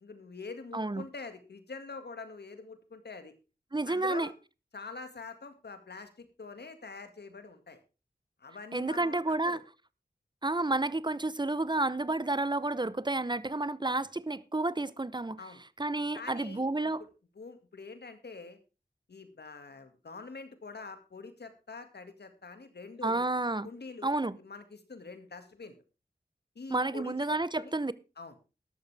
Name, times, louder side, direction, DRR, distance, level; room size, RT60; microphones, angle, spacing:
voice 1, 0.0-3.3 3.9-4.3 4.7-7.8 8.4-9.6 15.4-15.6 16.1-16.9 17.4-18.6 19.1-23.2 23.6-25.8 26.6-27.1 27.5-27.7 28.2-28.4, left 4 dB, 90° left, 2.1 m, -45 dB
voice 2, 0.7-1.1 3.7-4.3 8.7-9.6 10.4-15.4 15.8-17.0 23.0-23.7 24.0-24.4 26.7-27.9, right 2 dB, 25° right, 0.7 m, -30 dB
13.5 x 12.0 x 3.4 m
wide cardioid pair, 55°, 17 cm